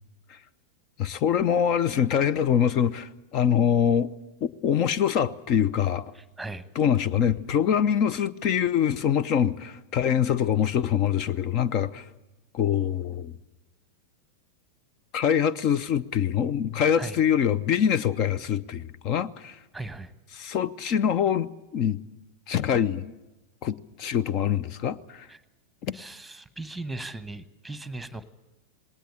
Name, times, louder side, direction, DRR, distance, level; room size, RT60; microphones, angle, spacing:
voice 1, 1.0-4.1 4.4-6.1 6.7-12.1 12.5-13.3 15.1-19.6 20.3-22.0 22.5-23.1 23.6-25.3 25.8-25.9, left 8 dB, 40° left, 0.6 m, -24 dB
voice 2, 6.1-6.6 17.0-17.2 19.7-20.1 25.3-25.4 25.9-28.2, right 2 dB, ahead, 1.1 m, -38 dB
20.0 x 18.5 x 8.8 m
figure-of-eight pair, 90°, 0 cm